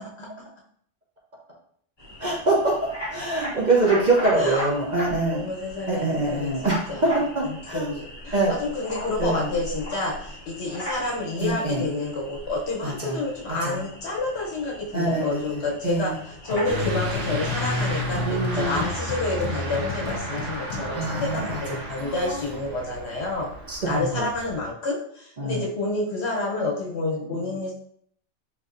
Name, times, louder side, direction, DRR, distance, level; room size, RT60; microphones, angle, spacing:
voice 1, 0.2-0.5 4.4-4.7 5.3-7.0 7.7-23.5 23.8-27.7, left 2 dB, 60° left, -2 dB, 1.2 m, -29 dB
sound 1, 2.0-16.8, equal, 20° left, 1.1 m, -37 dB
voice 2, 2.2-5.5 5.9-6.8 7.3-7.9 8.3-8.6 9.2-9.5 11.4-11.8 12.8-13.2 13.5-13.8 14.9-16.2 18.2-18.8 20.9-22.4 23.7-24.3 25.4-25.6 27.0-27.6, right 2 dB, 45° right, -3 dB, 0.6 m, -25 dB
sound 2, 16.5-21.6, left 3 dB, 75° left, 1.0 m, -36 dB
Truck / Accelerating revving vroom, 16.6-24.6, left 1 dB, 75° right, 1.1 m, -31 dB
3.8 x 2.7 x 2.5 m, 0.64 s
omnidirectional pair, 1.3 m